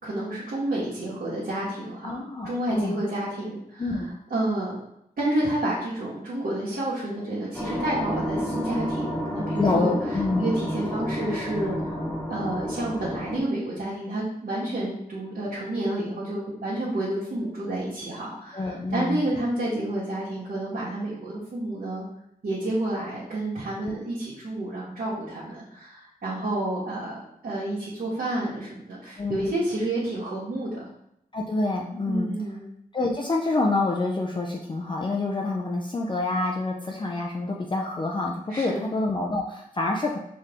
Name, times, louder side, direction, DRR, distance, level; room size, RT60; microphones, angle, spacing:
voice 1, 0.0-4.0 4.3-4.7 5.2-9.9 10.4-11.9 12.3-22.0 22.4-30.9 32.0-32.6 38.5-38.8, right 1 dB, 75° right, -9 dB, 1.6 m, -30 dB
voice 2, 2.0-3.0 3.8-4.1 9.6-10.5 18.5-19.2 23.8-24.0 29.2-29.5 31.3-32.3 32.9-40.2, left 2 dB, 30° left, 0 dB, 0.6 m, -27 dB
sound 1, 7.5-13.4, equal, 10° left, 1.2 m, -30 dB
4.6 x 3.1 x 3.6 m, 0.75 s
wide cardioid pair, 70°, 16 cm